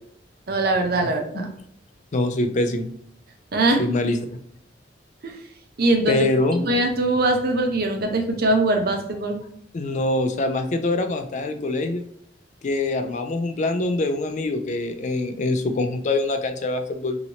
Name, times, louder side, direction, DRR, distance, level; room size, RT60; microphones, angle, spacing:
voice 1, 0.5-1.5 3.5-3.8 5.2-5.3 5.8-6.2 6.6-9.4, right 2 dB, 55° right, 4 dB, 0.6 m, -21 dB
voice 2, 2.1-2.9 3.8-4.2 6.1-6.6 9.7-12.1 12.6-17.2, left 2 dB, 40° left, 8 dB, 0.3 m, -24 dB
2.9 x 2.8 x 2.7 m, 0.65 s
head